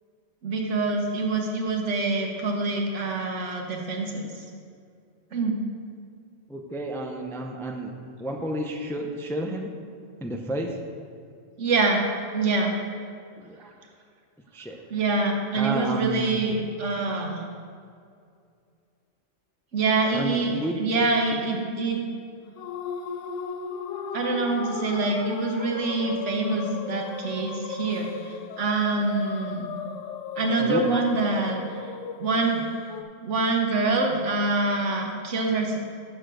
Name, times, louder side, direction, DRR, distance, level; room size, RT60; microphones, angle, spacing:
voice 1, 0.4-4.4 5.3-5.5 11.6-12.0 12.3-12.8 14.9-17.4 19.7-22.0 24.1-29.6 30.4-31.6 32.2-32.7 33.2-35.8, right 3 dB, 80° right, 1 dB, 1.5 m, -25 dB
voice 2, 6.5-7.9 8.2-9.7 10.2-10.7 13.4-13.6 14.5-14.8 15.5-16.4 20.1-21.1 30.6-31.0, right 1 dB, 5° left, 2 dB, 0.4 m, -31 dB
sound 1, 22.6-33.0, left 6 dB, 85° left, 1.0 m, -36 dB
7.1 x 6.8 x 6.2 m, 2.3 s
omnidirectional pair, 1.2 m